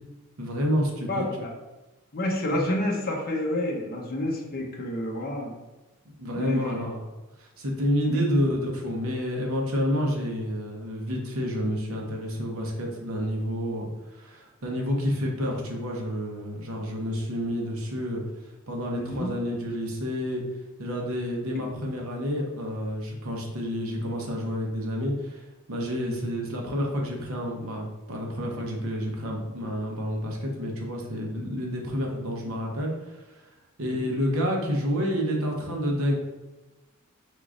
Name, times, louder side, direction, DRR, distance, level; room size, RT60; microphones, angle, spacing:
voice 1, 0.4-1.3 2.5-2.6 6.2-7.1 7.4-20.4 20.8-25.4 25.7-33.5 33.8-36.2, equal, 75° right, 0 dB, 0.9 m, -29 dB
voice 2, 1.1-1.5 2.1-5.6 6.3-6.7 8.1-8.2 18.9-19.3 21.6-21.7 26.0-26.1 32.5-32.6 33.9-34.0, left 1 dB, 45° left, 0 dB, 0.8 m, -29 dB
4.8 x 3.7 x 2.5 m, 1.1 s
head